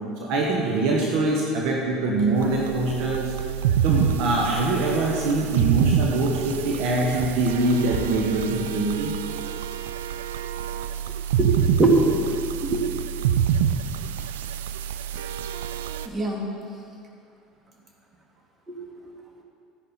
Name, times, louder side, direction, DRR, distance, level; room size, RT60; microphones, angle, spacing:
voice 1, 0.2-3.3 3.8-9.1, right 2 dB, 60° right, -1 dB, 1.4 m, -23 dB
sound 1, 2.4-16.1, right 8 dB, 75° right, 0.5 m, -27 dB
voice 2, 11.4-12.8 16.1-16.4 18.7-18.8, right 2 dB, 30° right, 0 dB, 2.2 m, -22 dB
12.0 x 10.5 x 4.3 m, 2.4 s
hypercardioid pair, 70°, 0 cm